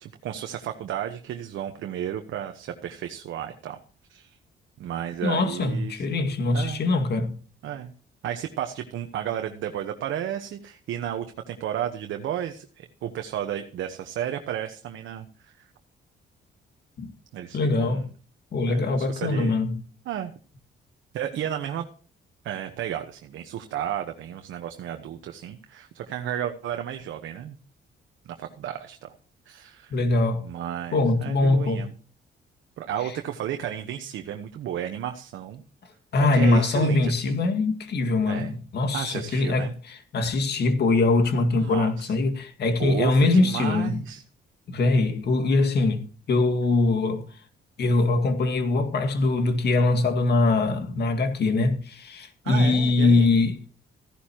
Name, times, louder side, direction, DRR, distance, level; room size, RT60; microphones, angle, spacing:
voice 1, 0.0-3.8 4.1-4.4 4.8-6.0 6.5-6.8 7.6-7.9 8.2-15.7 17.3-18.0 18.7-19.6 20.0-20.3 21.1-21.9 22.4-27.6 28.2-29.1 29.5-29.9 30.4-31.9 32.8-35.6 36.3-37.4 38.3-38.5 38.9-39.7 41.5-42.1 42.8-44.2 52.4-53.3, right 10 dB, 80° right, 1.2 m, -33 dB
voice 2, 5.2-7.4 17.0-17.1 17.5-18.0 18.5-19.8 29.9-30.5 30.9-31.9 36.1-44.0 44.7-47.3 47.8-53.6, left 3 dB, 55° left, 2.1 m, -22 dB
15.0 x 11.5 x 3.0 m
cardioid pair, 90°, 20 cm